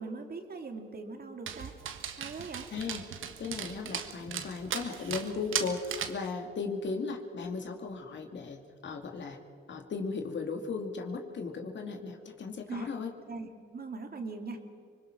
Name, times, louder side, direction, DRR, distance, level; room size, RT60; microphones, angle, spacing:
voice 1, 0.0-1.8 2.1-2.7 12.7-12.9 13.3-14.6, right 3 dB, 50° right, 4 dB, 2.6 m, -41 dB
Dog, 1.5-6.3, right 8 dB, 75° right, 1.5 m, -38 dB
voice 2, 2.7-3.1 3.4-9.4 9.7-13.1, left 4 dB, 60° left, 4 dB, 2.4 m, -36 dB
25.0 x 21.0 x 6.1 m, 2.2 s
cardioid pair, 65°, 21 cm